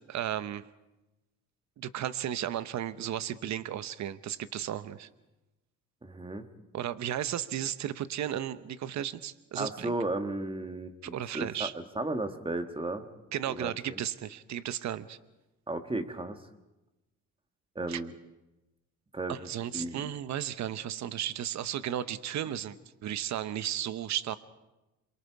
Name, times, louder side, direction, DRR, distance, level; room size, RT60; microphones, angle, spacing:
voice 1, 0.1-0.6 1.8-5.1 6.7-9.9 11.0-11.7 13.3-15.2 17.9-18.0 19.3-22.8 23.0-24.4, right 11 dB, 65° right, 14 dB, 0.9 m, -34 dB
voice 2, 6.0-6.5 9.6-13.1 13.5-14.0 15.7-16.4 17.7-18.1 19.1-19.5 19.7-20.1, right 2 dB, 15° right, 7 dB, 1.6 m, -34 dB
27.5 x 23.0 x 4.7 m, 1.0 s
cardioid pair, 90°, 30 cm